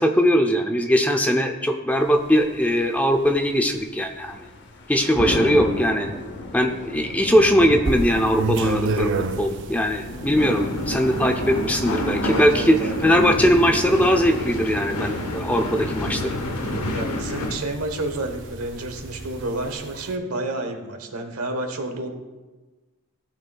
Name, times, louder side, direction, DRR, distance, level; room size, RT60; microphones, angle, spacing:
voice 1, 0.0-4.5 4.9-6.1 6.5-9.1 9.4-16.4, equal, 5° left, 4 dB, 0.4 m, -20 dB
sound 1, 1.9-19.8, left 1 dB, 55° left, 0.8 m, -37 dB
sound 2, 7.8-20.2, right 3 dB, 55° right, 0.5 m, -33 dB
sound 3, 10.4-17.6, left 1 dB, 85° left, 0.9 m, -28 dB
voice 2, 12.3-13.2 16.9-22.1, right 2 dB, 85° right, 6 dB, 1.1 m, -30 dB
15.0 x 5.8 x 2.3 m, 1.2 s
head